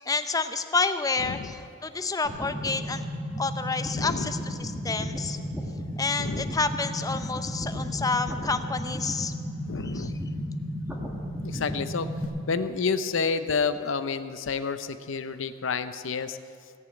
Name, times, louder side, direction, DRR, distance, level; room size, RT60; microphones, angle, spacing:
voice 1, 0.0-3.0 3.4-5.4 6.0-9.3 9.8-10.1, left 4 dB, 20° left, 9 dB, 0.6 m, -29 dB
sound 1, 2.2-12.2, equal, 5° right, 1.7 m, -34 dB
voice 2, 3.9-4.3 6.2-6.5 7.9-8.1 9.7-10.2 11.4-12.2 12.5-16.4, left 5 dB, 70° left, 11 dB, 0.6 m, -30 dB
17.5 x 7.1 x 8.9 m, 2.3 s
head